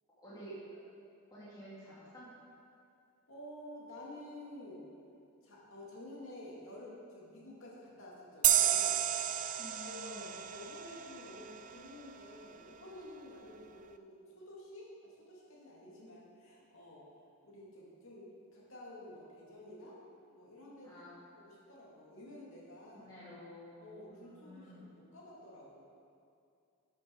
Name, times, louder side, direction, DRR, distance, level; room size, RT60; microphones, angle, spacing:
voice 1, 0.2-0.6 1.3-2.3 9.6-10.2 20.8-21.1 22.9-24.9, equal, 20° left, -11 dB, 2.5 m, -51 dB
voice 2, 3.3-4.9 5.4-9.0 9.9-17.0 17.4-20.0 20.3-21.0 21.4-23.1 23.8-25.8, left 1 dB, 65° left, -5 dB, 2.5 m, -51 dB
sound 1, 8.4-11.8, right 12 dB, 35° right, 0.3 m, -31 dB
11.5 x 7.4 x 4.8 m, 2.5 s
head